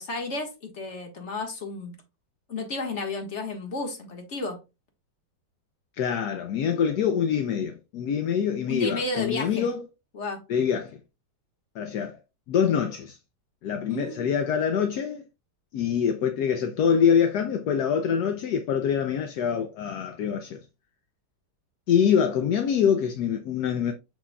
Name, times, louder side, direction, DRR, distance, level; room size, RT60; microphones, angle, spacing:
voice 1, 0.0-2.0 2.5-4.6 8.7-9.7 10.1-10.4 13.9-14.3, left 3 dB, 40° left, 1.7 m, -32 dB
voice 2, 6.0-9.8 10.5-11.0 11.8-12.2 12.5-13.2 13.6-15.2 15.7-20.6 21.9-23.9, left 7 dB, 65° left, 1.0 m, -25 dB
6.8 x 6.1 x 2.2 m
omnidirectional pair, 2.1 m